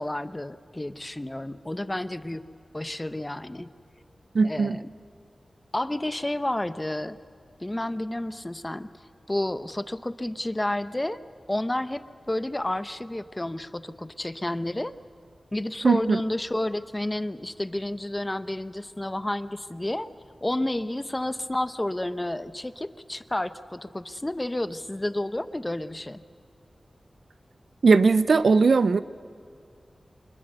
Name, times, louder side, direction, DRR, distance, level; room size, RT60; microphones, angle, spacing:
voice 1, 0.0-2.4 2.7-3.7 4.4-4.9 5.7-7.2 7.6-8.9 9.3-11.2 11.5-14.9 15.5-20.1 20.4-26.2, left 1 dB, 20° left, 13 dB, 0.7 m, -30 dB
voice 2, 4.3-4.8 15.8-16.2 27.8-29.0, right 4 dB, 75° right, 15 dB, 0.6 m, -19 dB
24.5 x 20.5 x 6.8 m, 2.3 s
wide cardioid pair, 65°, 0 cm